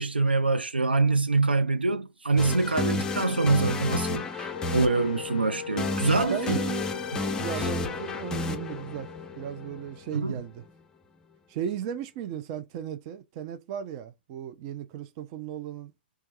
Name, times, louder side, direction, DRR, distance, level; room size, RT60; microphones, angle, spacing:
voice 1, 0.0-6.6 7.6-7.7 10.1-10.4, right 3 dB, 75° right, 0.6 m, -25 dB
sound 1, 2.4-10.3, left 3 dB, 10° left, 0.5 m, -32 dB
Wind instrument woodwind instrument, 4.5-10.4, left 8 dB, 65° left, 0.4 m, -40 dB
voice 2, 6.3-6.9 7.4-9.1 9.4-10.6 11.5-15.9, right 9 dB, 35° right, 0.5 m, -36 dB
4.5 x 2.4 x 2.6 m
figure-of-eight pair, 115°, 6 cm